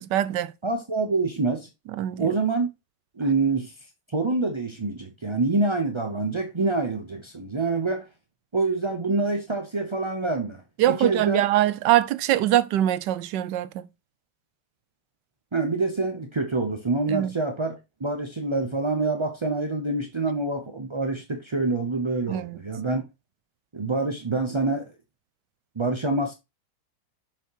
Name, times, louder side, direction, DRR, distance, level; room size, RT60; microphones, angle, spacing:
voice 1, 0.1-0.5 2.0-2.3 10.8-13.9 17.1-17.3 22.3-22.6, right 13 dB, 80° right, 1.2 m, -23 dB
voice 2, 0.6-1.7 2.2-2.7 3.2-3.7 4.1-8.1 8.5-10.6 10.9-11.5 15.5-23.0 23.7-24.9 25.8-26.3, right 3 dB, 35° right, 0.4 m, -26 dB
7.3 x 5.6 x 3.0 m
omnidirectional pair, 1.9 m